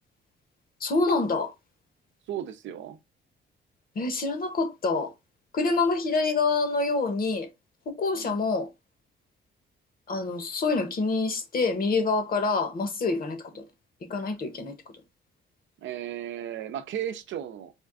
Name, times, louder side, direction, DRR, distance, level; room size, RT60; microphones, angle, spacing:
voice 1, 0.8-1.5 3.9-5.1 5.5-7.5 7.9-8.7 10.1-13.6 14.0-14.8, left 3 dB, 45° left, 1.1 m, -26 dB
voice 2, 2.3-3.0 8.1-8.4 15.8-17.7, right 10 dB, 70° right, 0.6 m, -35 dB
4.3 x 2.3 x 3.5 m
cardioid pair, 90°, 20 cm